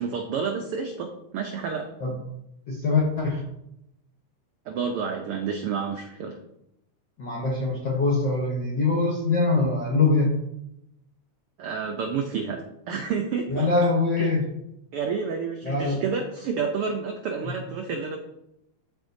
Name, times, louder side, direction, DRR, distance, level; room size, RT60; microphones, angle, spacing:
voice 1, 0.0-1.9 4.7-6.4 11.6-13.7 14.2-14.3 14.9-18.2, right 6 dB, 80° right, 3 dB, 1.2 m, -29 dB
voice 2, 2.7-3.4 7.2-10.3 13.5-14.4 15.6-16.0 17.4-17.5, left 3 dB, 65° left, -3 dB, 1.1 m, -23 dB
13.0 x 4.4 x 2.6 m, 0.82 s
omnidirectional pair, 3.3 m